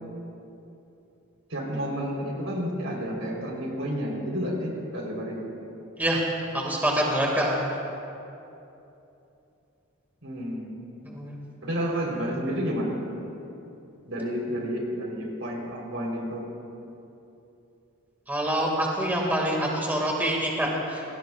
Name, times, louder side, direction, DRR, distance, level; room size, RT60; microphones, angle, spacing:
voice 1, 1.5-5.4 10.2-10.6 11.6-13.0 14.0-16.5, equal, 70° right, -1 dB, 3.8 m, -30 dB
voice 2, 6.5-7.7 11.1-11.4 18.3-21.0, right 1 dB, 10° right, -2 dB, 2.0 m, -26 dB
26.5 x 19.5 x 2.4 m, 2.9 s
head